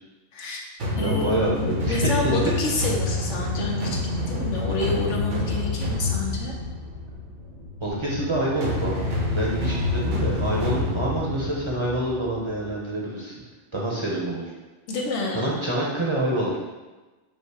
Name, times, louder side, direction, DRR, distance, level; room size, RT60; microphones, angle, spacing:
voice 1, 0.3-0.6 0.9-6.5 14.9-15.5, left 2 dB, 85° left, -1 dB, 1.1 m, -29 dB
sound 1, 0.8-12.7, left 2 dB, 80° right, 1.3 m, -28 dB
voice 2, 0.9-2.4 7.8-9.0 9.3-13.4 13.7-14.5 15.3-16.6, right 1 dB, 30° right, -5 dB, 0.7 m, -27 dB
5.4 x 2.1 x 4.7 m, 1.2 s
omnidirectional pair, 1.2 m